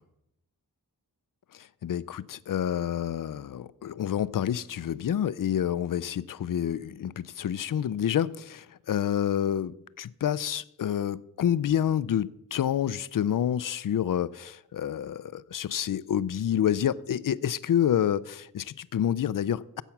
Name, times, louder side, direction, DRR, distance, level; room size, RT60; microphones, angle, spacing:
voice 1, 1.8-19.8, left 10 dB, 65° left, 19 dB, 0.5 m, -28 dB
14.5 x 8.2 x 6.0 m, 0.85 s
wide cardioid pair, 125°, 35 cm